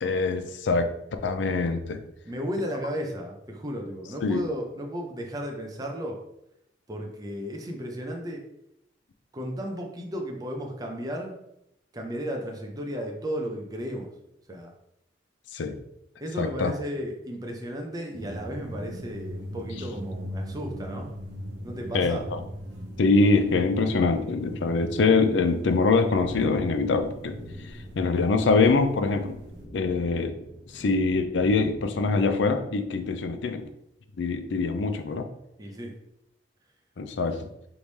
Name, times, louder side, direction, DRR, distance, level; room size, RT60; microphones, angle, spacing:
voice 1, 0.0-0.9 1.2-2.0 4.2-4.5 15.5-15.8 16.4-16.7 21.9-22.4 23.0-29.4 29.7-30.4 30.7-33.7 34.2-35.3 37.0-37.5, left 3 dB, 70° left, 8 dB, 0.4 m, -24 dB
voice 2, 2.2-6.2 6.9-8.4 9.3-11.4 11.9-14.1 14.5-14.7 16.2-21.1 21.6-22.2 35.6-36.0, equal, 20° right, 1 dB, 0.6 m, -34 dB
sound 1, 18.1-29.7, equal, 75° right, 0.9 m, -40 dB
sound 2, 26.1-32.9, equal, 5° left, 1.1 m, -45 dB
3.5 x 3.2 x 4.0 m, 0.81 s
head